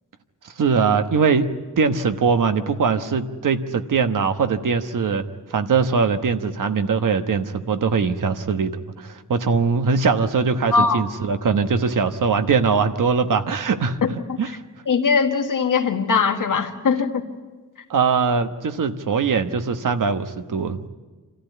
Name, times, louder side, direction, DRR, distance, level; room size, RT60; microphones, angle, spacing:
voice 1, 0.4-1.5 1.8-14.0 14.4-14.5 17.9-20.9, right 5 dB, 80° right, 9 dB, 1.2 m, -21 dB
voice 2, 10.7-11.0 14.0-14.4 14.9-17.2, left 5 dB, 85° left, 4 dB, 1.8 m, -20 dB
26.5 x 14.5 x 9.4 m, 1.3 s
wide cardioid pair, 150°, 31 cm